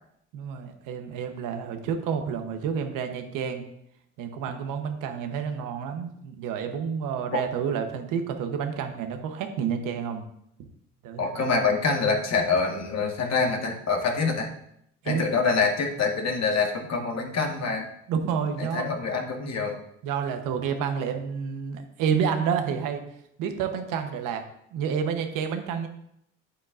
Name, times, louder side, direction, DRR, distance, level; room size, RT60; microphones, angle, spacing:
voice 1, 0.3-3.6 4.2-10.2 11.0-11.5 15.0-15.2 18.1-18.9 20.0-23.0 23.4-24.4 24.7-25.9, right 7 dB, 85° right, 6 dB, 1.0 m, -29 dB
voice 2, 11.2-14.5 15.0-17.9 18.6-19.8, left 4 dB, 55° left, 2 dB, 1.6 m, -25 dB
8.5 x 8.2 x 2.5 m, 0.75 s
cardioid pair, 80°, 31 cm